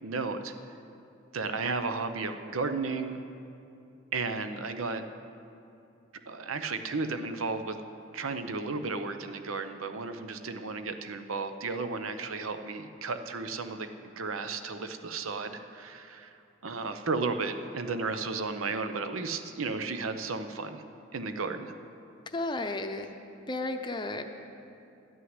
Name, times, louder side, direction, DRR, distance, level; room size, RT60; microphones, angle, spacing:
voice 1, 0.0-0.5 1.3-3.2 4.1-5.1 6.3-7.8 8.1-13.9 14.2-16.4 16.6-20.8 21.1-21.7, right 4 dB, 90° right, 9 dB, 0.8 m, -33 dB
voice 2, 22.3-23.1 23.5-24.2, left 2 dB, 20° left, 6 dB, 0.6 m, -33 dB
12.5 x 6.3 x 9.6 m, 2.7 s
head